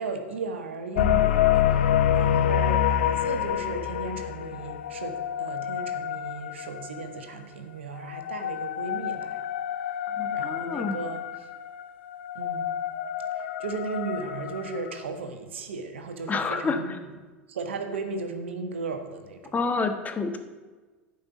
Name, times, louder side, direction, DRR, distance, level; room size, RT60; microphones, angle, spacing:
voice 1, 0.0-1.8 2.1-9.4 10.3-11.2 12.3-12.8 13.4-17.0 17.5-19.6, right 4 dB, 85° right, 6 dB, 1.3 m, -36 dB
sound 1, 1.0-7.2 8.0-15.0, left 10 dB, 75° left, 0.7 m, -27 dB
voice 2, 10.2-11.0 16.3-16.8 19.5-20.4, left 4 dB, 25° left, 7 dB, 1.2 m, -28 dB
10.0 x 5.6 x 8.1 m, 1.3 s
hypercardioid pair, 90°, 6 cm